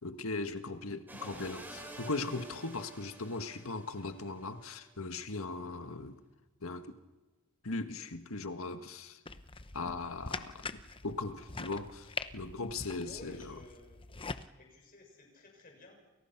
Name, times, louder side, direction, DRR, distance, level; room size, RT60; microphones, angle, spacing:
voice 1, 0.0-6.2 6.6-7.0 7.6-9.2 9.7-13.6, left 3 dB, 85° left, 1.6 m, -39 dB
sound 1, 1.1-4.6, right 2 dB, 10° right, 4.8 m, -49 dB
sound 2, 9.3-14.5, left 4 dB, 25° left, 0.8 m, -43 dB
voice 2, 13.0-14.0 14.6-16.2, left 2 dB, 40° left, 6.8 m, -54 dB
29.5 x 28.5 x 6.0 m
head